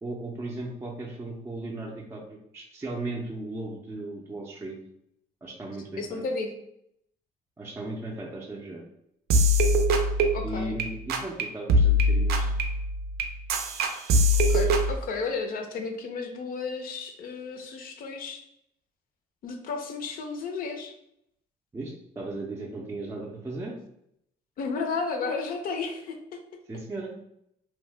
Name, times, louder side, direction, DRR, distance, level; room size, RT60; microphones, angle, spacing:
voice 1, 0.0-4.8 5.4-6.2 7.6-8.8 10.4-12.5 21.7-23.7 26.7-27.1, right 2 dB, 15° right, -2 dB, 0.4 m, -36 dB
voice 2, 6.0-6.5 10.3-10.7 14.3-18.4 19.4-20.9 24.6-26.4, left 4 dB, 55° left, 5 dB, 0.5 m, -33 dB
sound 1, 9.3-10.8 11.1-11.4 11.7-14.9, equal, 70° right, 0.5 m, -22 dB
2.7 x 2.1 x 3.3 m, 0.76 s
cardioid pair, 110°, 17 cm